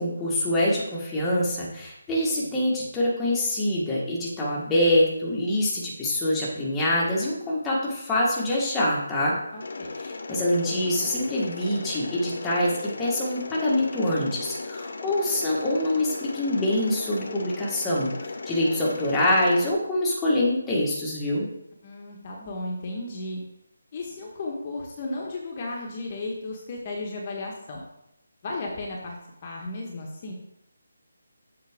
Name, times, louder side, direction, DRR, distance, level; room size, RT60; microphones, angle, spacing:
voice 1, 0.0-9.4 10.0-21.4, left 1 dB, 10° left, -6 dB, 1.4 m, -25 dB
voice 2, 9.5-9.9 21.8-23.4 23.9-27.8 28.4-29.2 29.4-30.3, left 2 dB, 30° left, -1 dB, 1.2 m, -34 dB
Mechanisms, 9.6-19.7, left 3 dB, 65° left, 0.9 m, -36 dB
7.5 x 5.8 x 3.6 m, 0.83 s
figure-of-eight pair, 170°, 0 cm